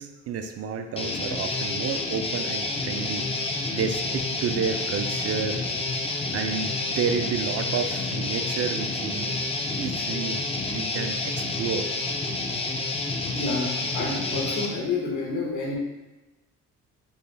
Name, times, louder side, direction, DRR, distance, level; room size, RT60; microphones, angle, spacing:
voice 1, 0.0-5.6 6.3-9.4 9.8-11.9, right 6 dB, 55° right, 7 dB, 0.5 m, -31 dB
Guitar, 1.0-14.7, left 2 dB, 20° left, 0.5 m, -29 dB
voice 2, 13.3-15.8, left 3 dB, 80° left, -4 dB, 1.5 m, -29 dB
5.3 x 3.1 x 2.2 m, 1.1 s
cardioid pair, 90°, 30 cm